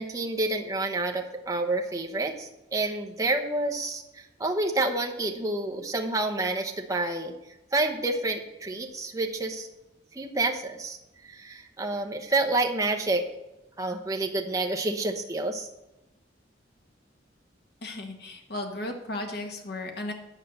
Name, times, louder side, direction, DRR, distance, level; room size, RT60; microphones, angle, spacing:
voice 1, 0.0-7.3 7.7-9.7 10.1-11.0 11.3-13.2 13.8-15.7, right 2 dB, 20° right, 2 dB, 0.9 m, -28 dB
voice 2, 17.8-20.1, left 1 dB, 60° left, 4 dB, 1.6 m, -35 dB
9.9 x 5.7 x 6.7 m, 0.95 s
head